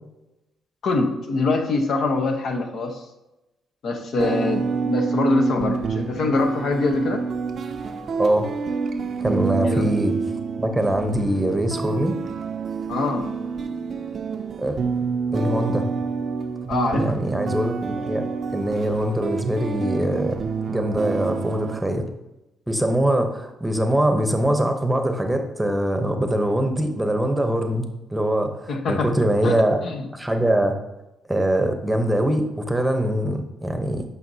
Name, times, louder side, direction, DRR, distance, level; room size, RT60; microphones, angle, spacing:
voice 1, 0.8-3.0 3.8-7.2 9.6-9.9 12.9-13.3 16.7-17.2 28.7-29.1 29.4-30.1, left 3 dB, 60° left, 5 dB, 0.9 m, -24 dB
sound 1, 4.2-21.8, right 5 dB, 50° right, 0.5 m, -28 dB
voice 2, 8.2-8.5 9.2-10.1 10.6-12.2 14.6-15.0 15.3-15.9 17.0-18.3 18.5-20.4 20.7-22.1 22.7-29.8 30.1-30.8 31.3-34.0, right 1 dB, 10° right, 6 dB, 0.9 m, -23 dB
9.2 x 5.6 x 2.8 m, 0.96 s
cardioid pair, 90°, 0 cm